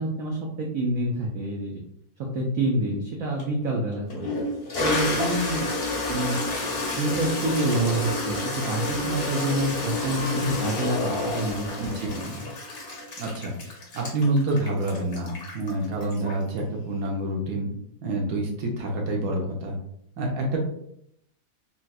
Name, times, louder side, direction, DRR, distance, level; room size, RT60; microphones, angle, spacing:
voice 1, 0.0-1.8 2.2-4.3 4.8-5.7 6.1-6.5 6.9-12.4, right 1 dB, 85° right, -1 dB, 0.7 m, -27 dB
Toilet flush, 3.4-3.5 4.1-16.6, left 2 dB, 50° left, 0.7 m, -30 dB
voice 2, 11.8-12.1 13.2-17.7 18.0-19.7 20.2-20.6, right 1 dB, 65° right, 0 dB, 1.2 m, -27 dB
4.0 x 2.2 x 2.3 m, 0.74 s
omnidirectional pair, 2.0 m